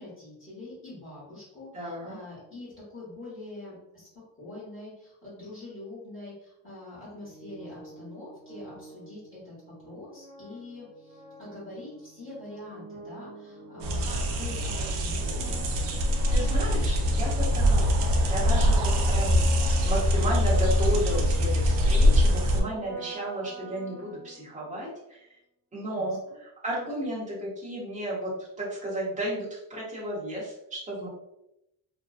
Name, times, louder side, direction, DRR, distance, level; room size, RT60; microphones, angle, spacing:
voice 1, 0.0-4.1 4.4-15.7 25.8-26.1, left 2 dB, 30° left, -9 dB, 1.1 m, -44 dB
voice 2, 1.7-2.2 16.3-19.4 19.8-25.2 25.7-31.1, equal, 20° right, -7 dB, 0.9 m, -33 dB
sound 1, 7.2-24.8, right 2 dB, 60° right, 1.3 m, -46 dB
sound 2, 13.8-22.6, equal, 80° right, 0.6 m, -23 dB
2.5 x 2.1 x 2.3 m, 0.84 s
cardioid pair, 150°, 42 cm